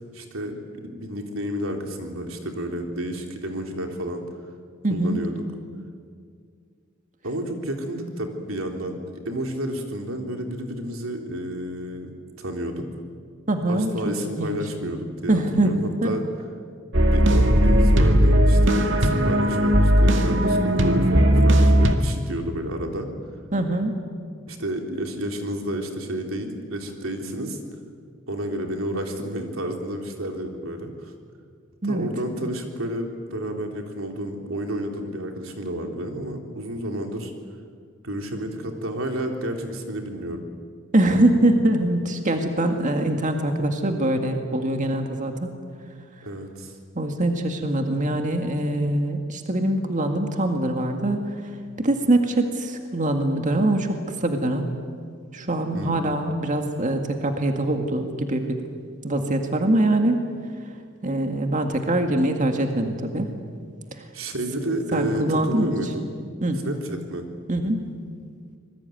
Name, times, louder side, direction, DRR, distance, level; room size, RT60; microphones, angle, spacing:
voice 1, 0.1-4.2 4.9-5.3 7.2-12.9 13.7-16.2 17.1-23.1 24.5-27.6 28.3-31.1 31.8-37.3 38.0-40.4 46.2-46.7 55.7-56.0 64.1-66.1 66.6-67.3, right 1 dB, 85° right, 3 dB, 3.5 m, -31 dB
voice 2, 4.8-5.2 13.5-13.9 14.4-14.6 15.3-15.7 16.0-16.1 23.5-23.9 31.8-32.1 40.9-45.5 47.0-51.2 51.8-53.9 54.2-54.7 55.3-58.6 59.0-60.2 61.0-63.3 64.9-65.8 66.4-66.7 67.5-67.9, right 1 dB, 40° right, 4 dB, 2.0 m, -23 dB
sound 1, 16.9-21.9, equal, 65° right, 2.1 m, -17 dB
26.0 x 21.0 x 9.3 m, 2.1 s
head